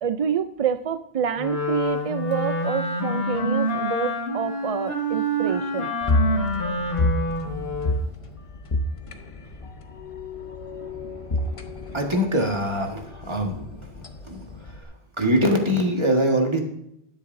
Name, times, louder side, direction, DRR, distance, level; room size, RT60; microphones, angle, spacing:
voice 1, 0.0-6.0, right 7 dB, 55° right, 10 dB, 0.4 m, -27 dB
Wind instrument woodwind instrument, 1.4-8.1, equal, 70° left, 1.7 m, -27 dB
sound 1, 6.0-14.8, left 2 dB, 35° left, 0.9 m, -29 dB
voice 2, 11.9-13.6 14.3-14.4 15.2-16.6, equal, 25° right, 2 dB, 1.6 m, -22 dB
12.0 x 9.8 x 2.6 m, 0.76 s
omnidirectional pair, 1.1 m